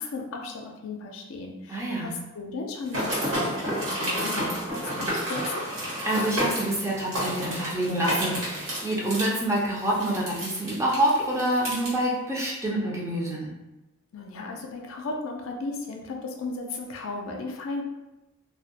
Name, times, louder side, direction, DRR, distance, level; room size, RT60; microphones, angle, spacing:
voice 1, 0.0-5.6 14.1-17.8, left 3 dB, 80° left, 2 dB, 0.4 m, -35 dB
voice 2, 1.7-2.1 6.0-13.5, right 1 dB, 15° right, -4 dB, 0.4 m, -27 dB
sound 1, 2.9-11.9, equal, 70° right, 1.1 m, -30 dB
2.2 x 2.0 x 2.7 m, 1.0 s
head